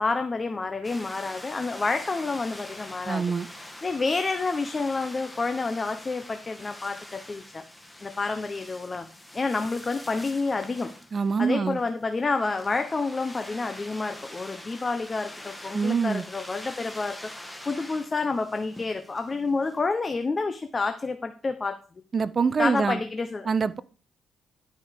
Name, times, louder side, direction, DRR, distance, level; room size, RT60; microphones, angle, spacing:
voice 1, 0.0-3.2 3.5-7.6 8.0-9.1 9.3-10.9 11.4-21.8 22.6-23.5, left 3 dB, 30° left, 0.8 m, -29 dB
sound 1, 0.8-19.8, left 1 dB, 10° left, 1.4 m, -44 dB
voice 2, 3.1-3.5 11.1-11.8 15.7-16.2 22.1-23.0 23.5-23.8, right 5 dB, 40° right, 0.6 m, -25 dB
11.5 x 5.3 x 5.0 m
cardioid pair, 90°, 0 cm